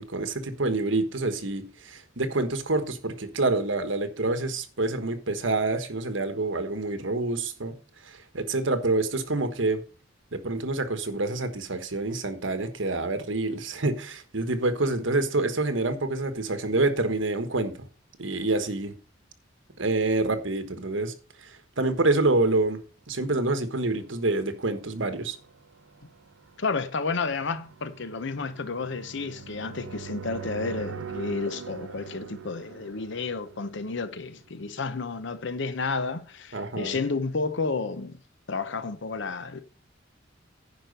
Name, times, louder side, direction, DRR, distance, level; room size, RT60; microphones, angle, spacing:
voice 1, 0.0-7.7 8.0-9.8 10.3-17.9 18.2-18.9 19.8-21.1 21.4-22.8 23.1-25.4 36.5-37.0, right 2 dB, 65° right, 1.4 m, -27 dB
sound 1, 23.8-34.6, right 6 dB, 85° right, 0.7 m, -43 dB
voice 2, 26.6-38.2 38.5-39.6, left 4 dB, 65° left, 0.8 m, -31 dB
10.5 x 5.0 x 6.7 m
head